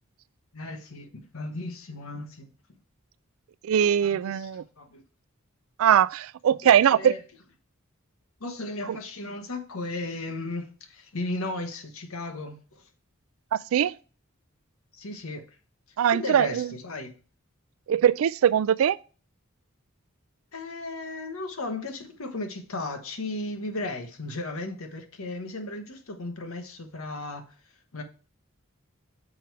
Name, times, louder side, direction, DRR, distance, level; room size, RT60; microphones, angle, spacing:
voice 1, 0.5-2.5 4.0-4.5 4.8-5.0 6.6-7.2 8.4-12.9 14.9-15.4 16.1-17.1 20.5-27.5 27.9-28.0, left 2 dB, 75° left, 1.1 m, -35 dB
voice 2, 3.6-4.6 5.8-7.1 8.9-9.0 13.5-13.9 16.0-16.7 17.9-19.0, right 9 dB, 75° right, 0.3 m, -21 dB
6.3 x 4.7 x 4.5 m
head